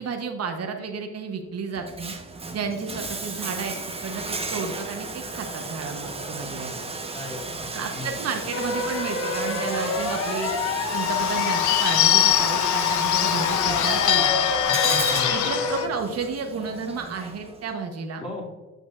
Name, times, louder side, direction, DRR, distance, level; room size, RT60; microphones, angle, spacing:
voice 1, 0.0-2.1 2.5-3.7 4.0-6.8 7.7-10.5 10.9-14.3 15.3-18.2, right 5 dB, 55° right, 4 dB, 1.0 m, -32 dB
Bathtub (filling or washing), 1.7-17.7, right 3 dB, 20° right, 1.0 m, -35 dB
voice 2, 7.1-8.1 14.7-15.7 18.2-18.4, left 1 dB, 20° left, -6 dB, 2.3 m, -36 dB
sound 1, 8.5-15.9, left 5 dB, 55° left, 1.2 m, -28 dB
Bird / Bell, 10.9-15.8, left 11 dB, 75° left, 0.6 m, -23 dB
8.1 x 6.8 x 2.4 m, 1.3 s
cardioid pair, 90°, 30 cm